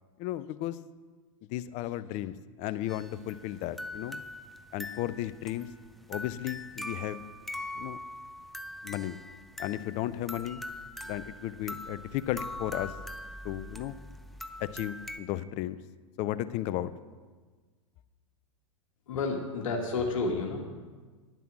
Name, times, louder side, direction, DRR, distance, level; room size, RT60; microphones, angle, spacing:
voice 1, 0.2-0.8 1.5-4.2 4.7-5.7 6.1-7.2 7.8-8.0 8.8-9.2 9.6-10.6 11.0-12.9 13.4-14.0 14.6-15.8 16.2-16.9, left 13 dB, 45° left, 15 dB, 0.6 m, -34 dB
sound 1, 2.9-15.2, left 1 dB, ahead, 0.6 m, -42 dB
voice 2, 19.1-20.6, left 3 dB, 75° left, 1 dB, 1.6 m, -30 dB
10.5 x 9.1 x 6.1 m, 1.4 s
hypercardioid pair, 105°, 17 cm